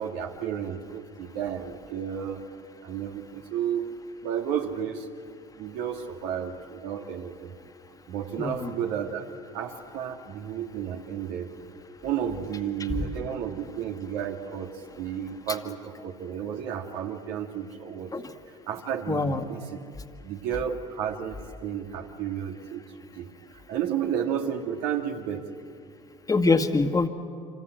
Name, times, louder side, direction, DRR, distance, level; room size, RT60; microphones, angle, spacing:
voice 1, 0.0-2.4 2.8-3.9 4.2-5.1 5.6-7.5 8.1-9.2 9.5-11.5 12.0-18.1 18.7-19.8 20.2-22.8 23.2-23.3 23.7-25.5, right 9 dB, 70° right, 3 dB, 2.8 m, -32 dB
voice 2, 8.4-8.7 18.1-18.2 19.1-19.4 26.3-27.1, left 3 dB, 20° left, 6 dB, 2.0 m, -23 dB
27.0 x 26.5 x 8.2 m, 2.4 s
hypercardioid pair, 70°, 16 cm